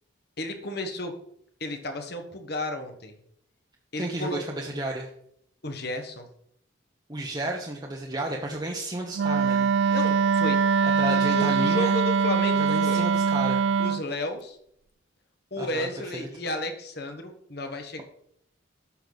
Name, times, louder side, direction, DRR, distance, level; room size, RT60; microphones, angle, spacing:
voice 1, 0.4-1.1 1.6-3.2 3.9-4.4 5.6-6.3 9.9-10.6 11.1-13.1 13.8-14.6 15.5-18.0, left 1 dB, 55° left, 6 dB, 1.4 m, -33 dB
voice 2, 4.0-5.1 7.1-9.7 11.0-12.0 12.5-13.6 15.6-15.9 16.1-16.3, right 1 dB, 20° right, -1 dB, 1.0 m, -32 dB
Wind instrument woodwind instrument, 9.2-14.0, right 6 dB, 65° right, 0.3 m, -22 dB
11.5 x 6.8 x 4.1 m, 0.70 s
head